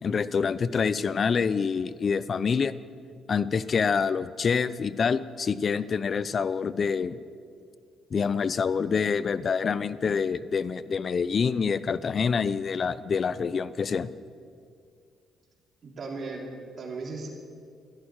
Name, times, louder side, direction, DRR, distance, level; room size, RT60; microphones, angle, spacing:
voice 1, 0.0-2.7 3.3-7.2 8.1-14.1, left 6 dB, 45° left, 17 dB, 0.6 m, -26 dB
voice 2, 15.8-17.3, right 3 dB, 50° right, -1 dB, 3.2 m, -37 dB
13.5 x 11.5 x 8.9 m, 2.2 s
cardioid pair, 90°, 0 cm